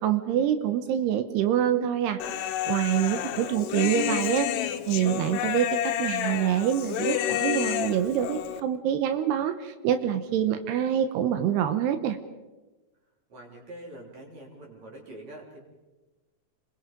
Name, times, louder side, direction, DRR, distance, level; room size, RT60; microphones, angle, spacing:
voice 1, 0.0-4.5 4.9-12.2, right 10 dB, 85° right, 9 dB, 3.1 m, -26 dB
Human voice, 2.2-8.6, left 12 dB, 85° left, 3.0 m, -30 dB
voice 2, 2.9-3.6 13.3-15.6, right 1 dB, 45° right, -1 dB, 4.6 m, -45 dB
29.0 x 22.0 x 5.2 m, 1.1 s
omnidirectional pair, 4.7 m